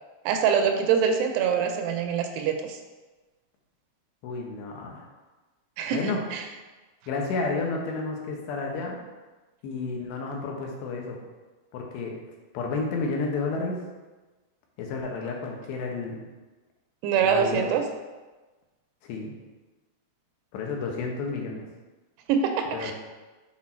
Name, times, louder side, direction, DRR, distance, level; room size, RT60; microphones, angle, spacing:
voice 1, 0.3-2.8 5.8-6.4 17.0-17.8 22.3-22.9, right 7 dB, 85° right, 5 dB, 2.6 m, -24 dB
voice 2, 4.2-5.1 5.9-6.2 7.1-9.0 9.6-11.2 11.7-12.1 12.5-13.8 14.8-16.2 17.2-17.6 19.0-19.3 20.5-21.6 22.7-22.9, left 3 dB, 90° left, 0 dB, 3.2 m, -31 dB
7.4 x 4.2 x 4.3 m, 1.2 s
omnidirectional pair, 4.8 m